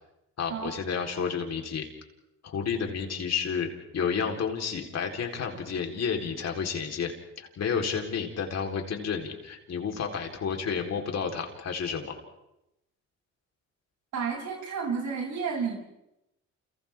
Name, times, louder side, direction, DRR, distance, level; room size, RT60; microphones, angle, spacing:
voice 1, 0.4-1.9 2.4-12.1, left 6 dB, 60° left, 2 dB, 4.0 m, -31 dB
voice 2, 14.1-15.8, right 6 dB, 70° right, -1 dB, 7.5 m, -31 dB
30.0 x 29.5 x 3.6 m, 0.89 s
cardioid pair, 90°, 30 cm